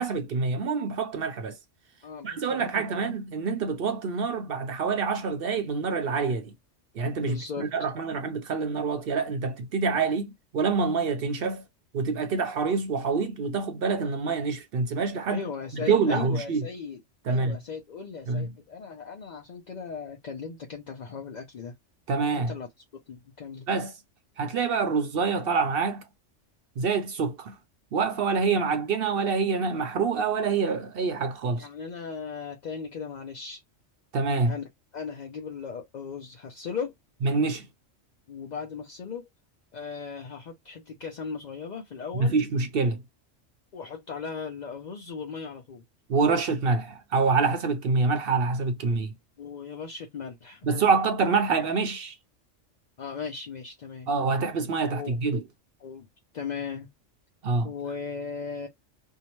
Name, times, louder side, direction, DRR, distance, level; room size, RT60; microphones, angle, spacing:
voice 1, 0.0-1.6 2.2-6.5 7.0-11.6 11.9-15.5 15.8-16.7 17.3-17.6 18.3-18.5 22.1-22.5 23.7-23.9 24.4-26.0 26.8-27.6 27.9-31.7 34.1-34.5 37.2-37.7 42.1-43.0 46.1-49.1 50.6-52.2 54.1-55.4 57.4-57.7, right 4 dB, 60° right, 0.7 m, -26 dB
voice 2, 2.0-3.0 7.2-7.9 15.3-17.0 17.3-21.7 22.3-22.7 23.1-23.7 31.5-33.6 34.5-34.6 34.9-36.9 38.3-39.2 39.7-42.4 43.7-45.8 49.4-50.7 53.0-54.1 54.9-55.2 55.8-56.1 56.3-56.9 57.6-58.7, left 5 dB, 55° left, 0.5 m, -37 dB
2.7 x 2.1 x 2.9 m
omnidirectional pair, 1.3 m